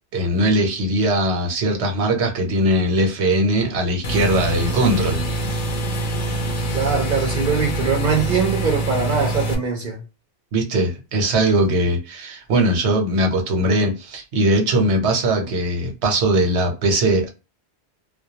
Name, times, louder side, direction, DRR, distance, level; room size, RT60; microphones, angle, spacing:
voice 1, 0.1-5.2 10.5-17.3, right 1 dB, 85° right, 1.0 m, -20 dB
sound 1, 4.0-9.5, right 1 dB, 55° left, 0.7 m, -24 dB
voice 2, 6.7-10.0, right 5 dB, 55° right, 0.7 m, -22 dB
2.2 x 2.2 x 2.7 m
omnidirectional pair, 1.1 m